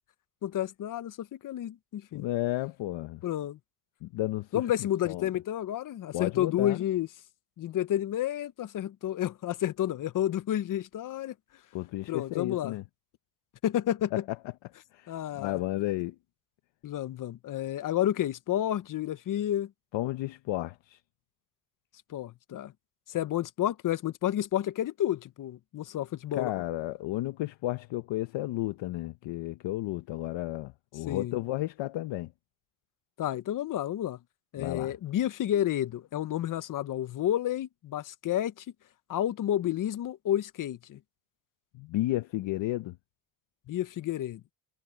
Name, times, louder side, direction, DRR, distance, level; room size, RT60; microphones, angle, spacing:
voice 1, 0.4-2.3 3.2-3.6 4.5-7.1 7.6-11.3 12.1-12.7 13.6-14.1 15.1-15.6 16.8-19.7 22.1-22.7 23.1-26.5 31.1-31.4 33.2-34.2 34.5-38.6 39.1-41.0 43.7-44.4, left 12 dB, 45° left, 0.7 m, -30 dB
voice 2, 2.1-3.2 4.0-4.5 5.1-5.3 6.1-6.8 11.7-12.8 14.1-14.2 14.9-16.2 19.9-21.0 26.3-32.3 34.6-34.9 41.7-43.0, left 16 dB, 80° left, 0.9 m, -32 dB
cardioid pair, 140°, 44 cm